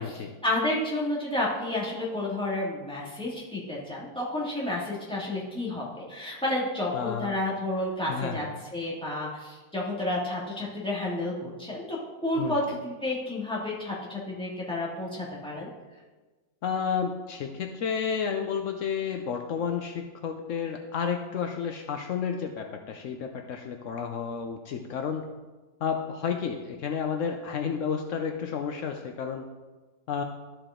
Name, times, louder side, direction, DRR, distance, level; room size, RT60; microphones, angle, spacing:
voice 1, 0.0-8.5 8.7-15.7, left 1 dB, 5° left, -6 dB, 1.9 m, -31 dB
voice 2, 6.9-7.3 8.1-8.5 12.4-12.6 16.6-25.2 25.8-29.4 30.1-30.2, left 6 dB, 80° left, 4 dB, 0.6 m, -31 dB
13.0 x 4.9 x 3.7 m, 1.2 s
omnidirectional pair, 2.0 m